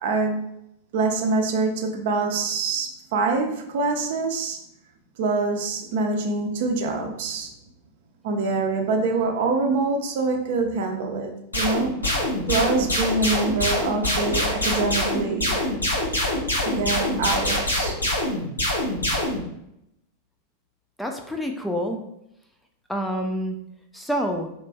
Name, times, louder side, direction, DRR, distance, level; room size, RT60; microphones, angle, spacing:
voice 1, 0.0-0.5 0.9-4.6 5.2-7.5 8.2-11.9 12.5-15.7 16.7-18.0, right 3 dB, 55° right, 3 dB, 0.5 m, -25 dB
sound 1, 11.5-19.4, left 1 dB, 85° left, 1.1 m, -24 dB
voice 2, 21.0-22.0 22.9-23.6 23.9-24.5, equal, 5° left, 3 dB, 0.4 m, -27 dB
3.3 x 2.9 x 3.3 m, 0.82 s
figure-of-eight pair, 90°, 0 cm